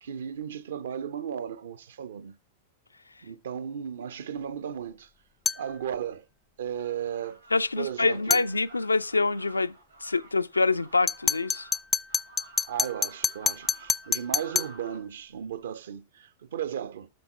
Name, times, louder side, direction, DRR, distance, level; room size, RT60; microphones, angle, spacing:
voice 1, 0.0-2.4 3.2-5.1 5.5-6.2 6.6-7.4 7.8-8.5 12.7-17.1, right 9 dB, 60° right, 0.7 m, -35 dB
sound 1, 5.4-5.7 8.3-8.5 11.1-14.8, left 5 dB, 15° left, 0.4 m, -28 dB
sound 2, 6.7-15.0, right 3 dB, 80° right, 3.1 m, -52 dB
voice 2, 7.5-9.7 10.0-11.7, left 3 dB, 80° left, 0.4 m, -26 dB
12.0 x 4.2 x 4.2 m
figure-of-eight pair, 95°, 0 cm